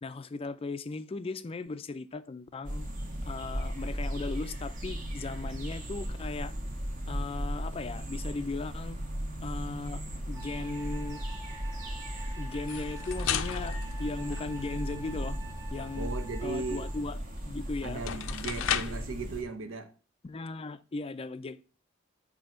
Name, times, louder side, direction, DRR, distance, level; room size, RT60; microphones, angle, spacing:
voice 1, 0.0-2.9 3.2-6.5 7.1-9.0 9.4-11.2 12.4-15.4 15.7-16.1 16.4-18.7 20.2-21.6, left 3 dB, 30° left, 0.4 m, -37 dB
sound 1, 2.6-19.4, equal, 45° right, 1.3 m, -36 dB
Wind instrument woodwind instrument, 10.3-17.1, right 2 dB, 15° right, 0.6 m, -48 dB
sound 2, 12.5-14.9 17.4-17.5 17.9-19.1, left 9 dB, 85° left, 0.5 m, -35 dB
voice 2, 15.9-16.9 17.8-19.9, right 3 dB, 80° right, 0.8 m, -37 dB
6.6 x 2.8 x 5.6 m
head